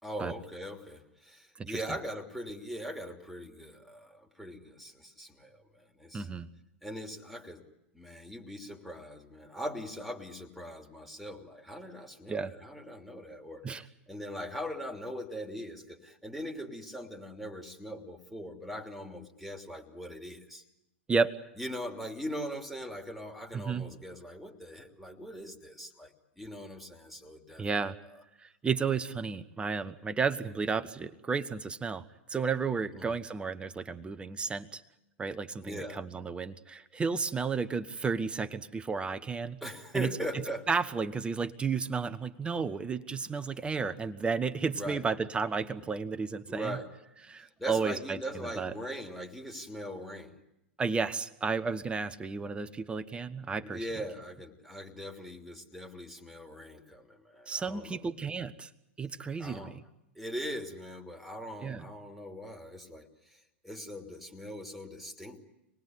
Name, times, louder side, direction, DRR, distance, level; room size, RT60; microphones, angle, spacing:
voice 1, 0.0-6.3 6.8-7.6 7.9-13.6 14.1-20.6 21.6-27.6 32.9-33.1 35.6-36.0 39.6-40.7 44.7-45.0 46.5-46.9 47.4-50.4 53.6-58.0 59.4-59.7 60.1-65.4, equal, ahead, 2 dB, 3.0 m, -41 dB
voice 2, 6.1-6.5 12.3-12.5 13.6-13.8 21.1-21.4 23.5-23.8 27.6-28.0 28.4-32.0 32.3-34.8 35.2-39.6 39.9-40.1 40.7-46.8 47.3-48.7 50.8-53.9 57.5-58.7 59.0-59.8 61.6-61.9, right 5 dB, 15° right, 12 dB, 1.2 m, -32 dB
26.0 x 20.0 x 9.6 m, 0.89 s
hypercardioid pair, 100°, 7 cm